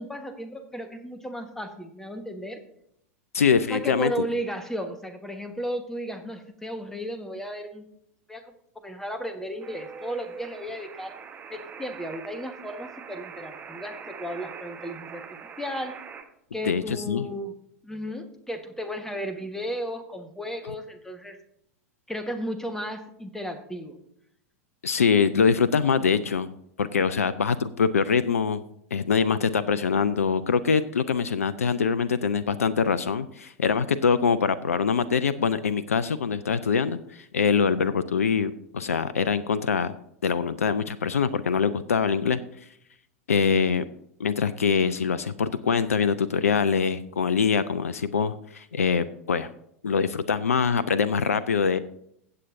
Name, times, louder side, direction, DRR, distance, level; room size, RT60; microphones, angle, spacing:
voice 1, 0.0-2.6 3.7-7.8 8.3-8.5 8.8-11.2 11.5-16.0 16.5-17.5 17.8-21.4 22.1-24.0, equal, 5° left, 8 dB, 1.3 m, -34 dB
voice 2, 3.3-4.3 16.6-17.2 24.8-26.5 26.8-28.6 28.9-39.9 40.2-42.4 43.3-43.8 44.2-49.5 49.8-51.8, left 6 dB, 75° left, 16 dB, 0.4 m, -24 dB
sound 1, 9.6-16.2, right 6 dB, 20° right, 1.2 m, -43 dB
16.0 x 7.7 x 2.6 m, 0.72 s
figure-of-eight pair, 90°, 8 cm